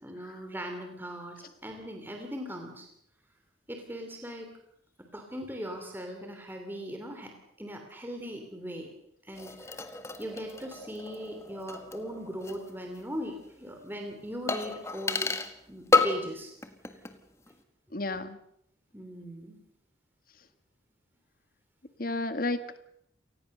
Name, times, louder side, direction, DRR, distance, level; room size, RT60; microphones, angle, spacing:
voice 1, 0.0-2.9 3.7-4.5 5.1-7.3 7.6-8.9 9.2-9.9 10.2-15.3 15.7-16.5 16.9-17.0 18.9-19.6, equal, 10° right, 3 dB, 3.1 m, -39 dB
sound 1, 9.3-12.7 12.9-13.0 14.5-15.6 15.9-16.3 16.6-17.2 17.5-17.6, left 3 dB, 15° left, 1.6 m, -31 dB
voice 2, 17.9-18.4 22.0-22.8, left 2 dB, 50° left, 10 dB, 1.7 m, -32 dB
28.5 x 19.5 x 6.7 m, 0.74 s
head